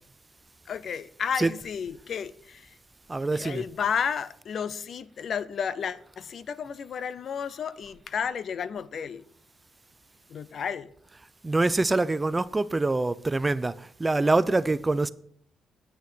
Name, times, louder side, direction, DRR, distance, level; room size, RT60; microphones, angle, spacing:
voice 1, 0.7-2.8 3.3-9.2 10.3-10.9, left 7 dB, 55° left, 0.6 m, -32 dB
voice 2, 3.1-3.6 11.4-15.1, right 2 dB, 20° right, 0.4 m, -25 dB
9.4 x 6.4 x 6.9 m
cardioid pair, 90°, 0 cm